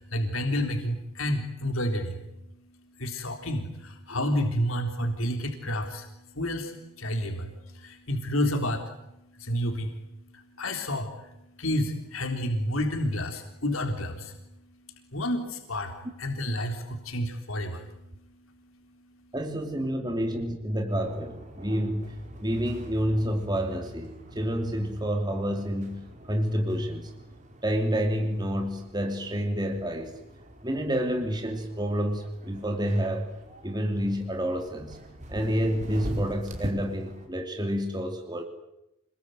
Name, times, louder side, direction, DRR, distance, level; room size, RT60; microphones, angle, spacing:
voice 1, 0.0-2.2 3.0-6.1 6.3-8.9 9.4-9.9 10.3-11.3 11.6-14.4 15.1-17.8, left 1 dB, 85° left, 4 dB, 3.7 m, -30 dB
voice 2, 19.3-22.1 22.4-26.0 26.3-27.1 27.6-30.1 30.6-33.3 33.6-35.0 35.3-38.4, equal, 20° right, 4 dB, 2.9 m, -29 dB
sound 1, 20.9-37.3, equal, 35° right, 4.9 m, -44 dB
28.0 x 21.0 x 9.4 m, 0.87 s
head